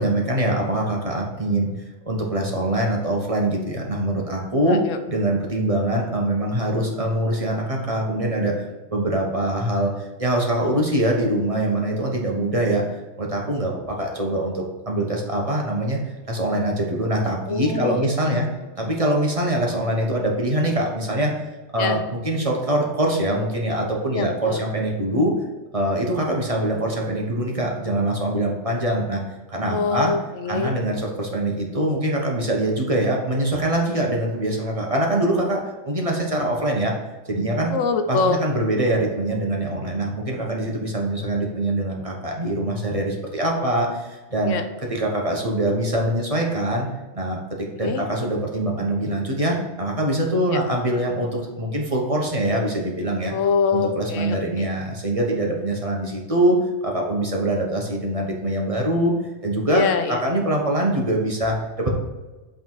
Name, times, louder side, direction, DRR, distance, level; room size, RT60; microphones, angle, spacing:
voice 1, 0.0-1.7 2.1-4.8 5.1-8.6 8.9-12.8 13.2-16.0 16.3-18.4 18.8-21.5 21.7-25.3 25.7-29.2 29.5-30.1 30.5-36.9 37.3-37.7 38.1-44.6 44.9-46.9 47.1-53.3 53.7-59.1 59.4-61.9, right 1 dB, 30° right, -1 dB, 1.1 m, -23 dB
voice 2, 4.6-5.0 17.5-18.4 21.8-22.0 24.1-24.6 29.7-30.7 37.7-38.4 44.4-44.6 47.8-48.0 50.4-50.6 53.3-54.6 59.7-60.2, left 5 dB, 90° left, 7 dB, 1.1 m, -24 dB
8.2 x 3.8 x 4.6 m, 1.2 s
omnidirectional pair, 1.3 m